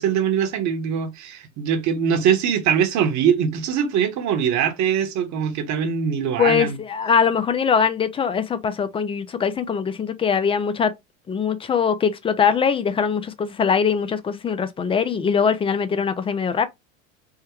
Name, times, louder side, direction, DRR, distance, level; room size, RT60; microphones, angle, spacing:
voice 1, 0.0-6.8, right 8 dB, 45° right, 1.1 m, -22 dB
voice 2, 6.4-10.9 11.3-16.7, left 6 dB, 15° left, 0.4 m, -22 dB
3.6 x 2.1 x 3.0 m
hypercardioid pair, 95°, 40 cm